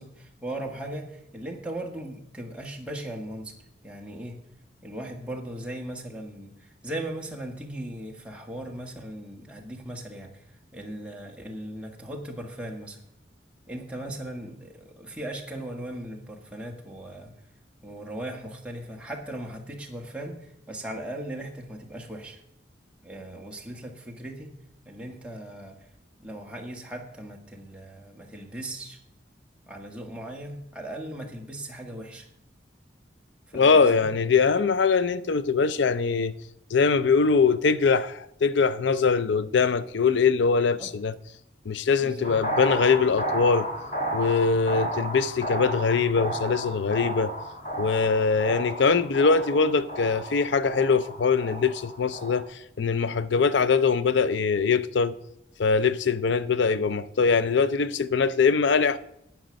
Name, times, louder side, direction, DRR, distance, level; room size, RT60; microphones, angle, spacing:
voice 1, 0.0-3.5 3.8-4.4 4.8-10.5 10.7-13.0 13.7-17.3 17.8-22.4 23.0-24.5 24.8-25.9 26.2-29.0 29.7-32.3 33.5-34.1 40.8-40.9 42.0-42.3, right 1 dB, 5° right, 1.6 m, -38 dB
voice 2, 33.5-36.3 36.7-41.1 41.7-43.7 44.1-47.3 47.8-55.2 55.6-59.0, left 5 dB, 75° left, 0.5 m, -22 dB
sound 1, 42.2-52.4, right 1 dB, 40° left, 2.2 m, -33 dB
10.5 x 9.2 x 6.4 m
head